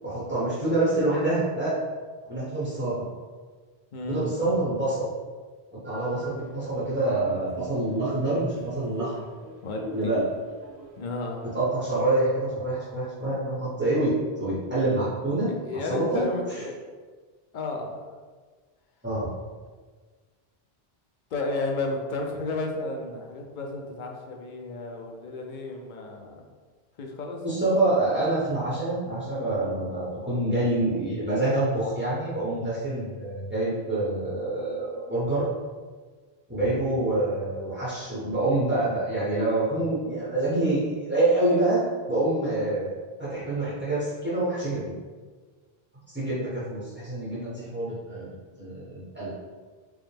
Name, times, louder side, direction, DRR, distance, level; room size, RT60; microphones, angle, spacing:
voice 1, 0.0-1.8 2.3-3.1 4.1-5.1 5.7-9.1 9.9-10.2 11.5-16.6 19.0-19.3 27.4-35.5 36.5-41.8 42.1-42.9 43.2-45.0 46.1-49.3, right 2 dB, 10° right, -9 dB, 0.9 m, -26 dB
voice 2, 3.9-4.3 9.6-10.1 11.0-11.5 15.5-16.7 17.5-18.1 21.3-26.4 27.0-27.4, left 2 dB, 55° left, 1 dB, 0.6 m, -32 dB
sound 1, 5.9-11.6, right 1 dB, 50° right, 0.6 m, -45 dB
4.7 x 2.0 x 3.3 m, 1.5 s
omnidirectional pair, 1.0 m